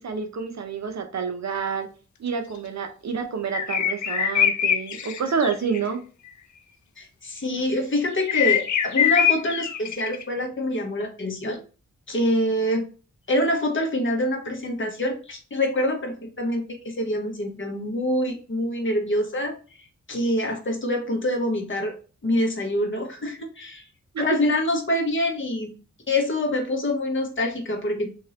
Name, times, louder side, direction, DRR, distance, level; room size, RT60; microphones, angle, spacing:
voice 1, 0.0-1.9 2.2-6.0 24.1-24.2, right 6 dB, 65° right, 5 dB, 0.8 m, -28 dB
sound 1, 3.5-5.8 8.3-10.2, left 9 dB, 70° left, 0.6 m, -23 dB
voice 2, 7.0-11.6 12.1-12.9 13.3-19.6 20.1-21.9 22.2-23.8 24.2-25.7 26.1-28.1, left 1 dB, 40° left, 3 dB, 1.1 m, -25 dB
3.8 x 2.8 x 4.1 m, 0.36 s
wide cardioid pair, 135°, 30 cm